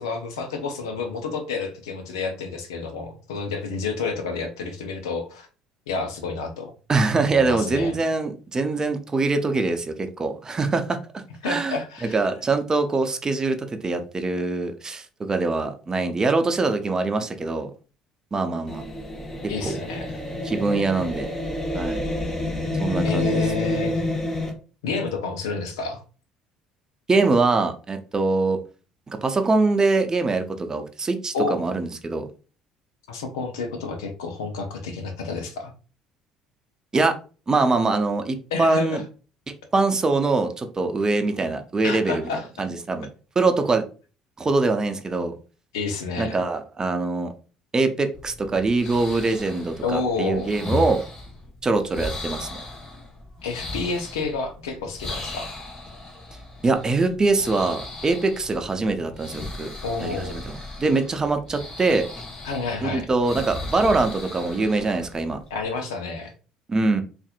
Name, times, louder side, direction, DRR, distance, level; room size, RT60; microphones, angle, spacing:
voice 1, 0.0-5.5 5.9-6.7 7.3-7.9 11.4-12.2 19.5-20.2 23.0-24.0 24.8-26.0 31.3-31.6 33.1-35.7 38.5-39.0 41.8-42.5 45.7-46.4 49.8-50.5 53.4-55.5 59.8-60.5 62.4-63.1 65.5-66.3, left 4 dB, 80° left, 5 dB, 0.7 m, -29 dB
voice 2, 6.9-11.0 11.4-11.8 12.1-17.7 18.3-18.8 19.6-19.8 20.4-21.3 21.7-22.0 22.8-23.4 27.1-28.6 29.1-32.3 36.9-37.2 37.5-39.0 39.7-42.3 42.6-43.1 43.4-43.8 44.4-45.4 46.2-47.3 47.7-51.0 51.6-52.6 56.6-59.7 60.0-62.1 62.8-65.4 66.7-67.0, right 3 dB, 25° right, 7 dB, 0.6 m, -23 dB
sound 1, 18.7-24.5, left 1 dB, 15° left, 0.9 m, -28 dB
sound 2, 48.1-65.7, left 2 dB, 35° left, 1.2 m, -37 dB
4.1 x 2.5 x 2.4 m, 0.35 s
hypercardioid pair, 60°, 2 cm